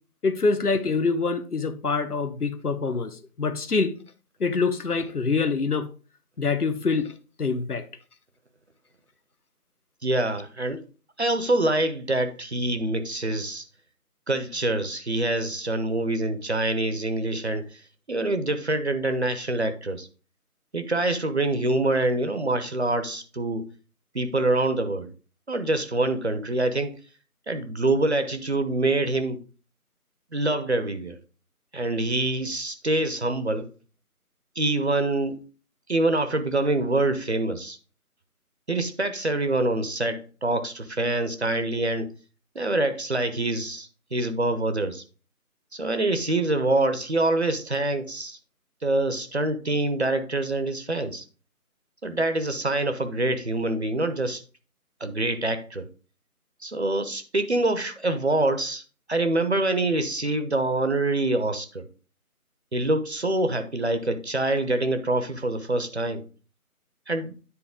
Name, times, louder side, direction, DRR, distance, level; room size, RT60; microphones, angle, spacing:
voice 1, 0.2-4.0 4.4-5.9 6.4-7.1 7.4-7.9, left 4 dB, 80° left, 1.0 m, -25 dB
voice 2, 10.0-10.8 11.2-13.6 14.3-17.8 18.1-20.1 20.7-23.6 24.1-25.1 25.5-26.9 27.5-29.4 30.3-31.2 31.7-33.7 34.6-35.4 35.9-37.8 38.7-42.1 42.5-45.0 45.7-48.4 48.8-51.2 52.0-54.4 55.0-55.9 56.6-58.8 59.1-61.9 62.7-66.2 67.1-67.3, right 2 dB, 50° right, 0.7 m, -25 dB
9.7 x 4.2 x 3.7 m
figure-of-eight pair, 165°, 45 cm